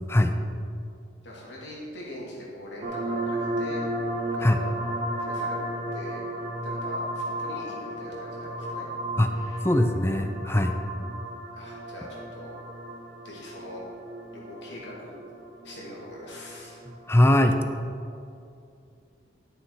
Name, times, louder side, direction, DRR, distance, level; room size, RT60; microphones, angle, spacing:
voice 1, 1.2-3.8 4.3-4.8 5.2-5.6 5.9-6.2 6.6-8.9 9.3-9.7 11.5-12.5 13.2-13.8 14.3-15.2 15.6-16.8, left 1 dB, 70° left, -4 dB, 2.6 m, -42 dB
sound 1, 2.8-17.4, right 1 dB, 45° right, 1.2 m, -34 dB
voice 2, 9.6-10.8 17.1-17.6, left 1 dB, 15° left, 7 dB, 0.5 m, -21 dB
11.5 x 6.5 x 4.8 m, 2.5 s
head